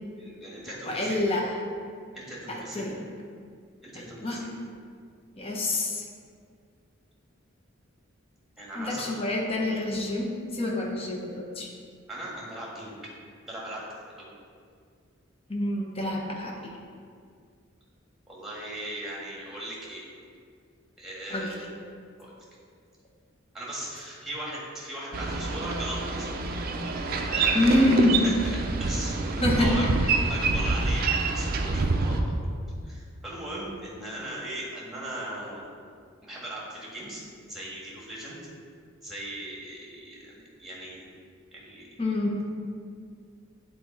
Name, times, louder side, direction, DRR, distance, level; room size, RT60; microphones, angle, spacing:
voice 1, 0.1-1.2 2.1-2.9 3.8-4.5 8.6-9.2 12.1-13.0 13.5-13.8 14.2-14.3 18.3-20.0 21.0-21.7 22.2-22.3 23.5-26.4 27.3-28.0 28.4-29.8 30.3-32.5 32.8-35.7 36.2-37.2 37.5-38.4 39.0-41.1 41.5-41.9, right 1 dB, ahead, -5 dB, 1.6 m, -38 dB
voice 2, 0.8-1.5 2.5-3.0 3.9-4.4 5.4-6.0 8.8-11.7 15.5-16.7 21.3-21.5 27.5-28.4 29.4-29.9 42.0-42.4, left 1 dB, 30° left, 0 dB, 0.9 m, -26 dB
Boat Water vehicle, 25.1-32.2, right 3 dB, 45° right, 0.5 m, -27 dB
8.3 x 4.1 x 4.2 m, 2.2 s
head